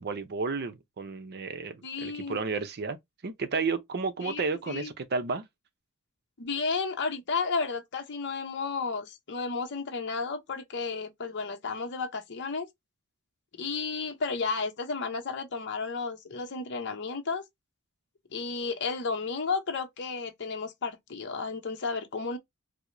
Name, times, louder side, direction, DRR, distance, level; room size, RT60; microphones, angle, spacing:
voice 1, 0.0-3.0 3.2-5.4, right 4 dB, 45° right, 0.5 m, -32 dB
voice 2, 1.8-2.4 4.2-4.9 6.4-12.7 13.6-17.4 18.3-22.4, left 4 dB, 50° left, 0.7 m, -33 dB
4.7 x 2.0 x 2.5 m
head